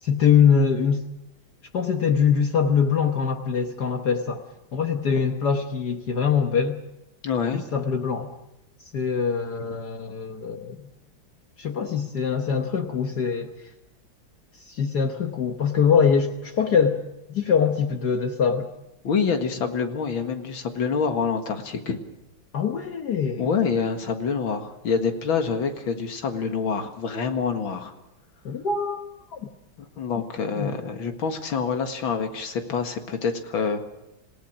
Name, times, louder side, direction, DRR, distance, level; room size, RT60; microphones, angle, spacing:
voice 1, 0.0-1.0 1.7-4.4 4.7-6.8 7.5-8.3 8.9-10.8 11.6-13.5 14.6-17.0 17.3-18.7 22.5-23.6 28.4-29.0 29.3-29.5 30.5-30.7, left 6 dB, 60° left, 6 dB, 1.6 m, -23 dB
voice 2, 7.2-7.7 19.0-22.0 23.4-27.9 30.0-33.9, left 5 dB, 90° left, 6 dB, 2.6 m, -26 dB
27.5 x 17.0 x 6.1 m, 0.90 s
omnidirectional pair, 2.1 m